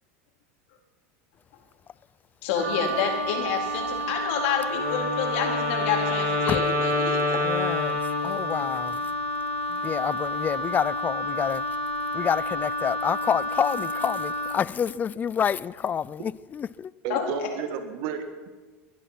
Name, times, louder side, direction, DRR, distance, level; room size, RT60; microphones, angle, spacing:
voice 1, 2.4-7.4 17.1-17.5, left 7 dB, 70° left, 3.9 m, -28 dB
Wind instrument woodwind instrument, 2.5-14.6, left 1 dB, 90° right, 2.5 m, -30 dB
Wind instrument woodwind instrument 2, 4.7-8.8, left 1 dB, 45° right, 3.6 m, -28 dB
voice 2, 7.4-9.0 9.7-11.6 12.1-16.9, left 8 dB, 25° left, 0.4 m, -28 dB
voice 3, 17.0-18.5, right 6 dB, 60° right, 1.7 m, -32 dB
21.5 x 11.5 x 5.8 m
supercardioid pair, 115°, 7 cm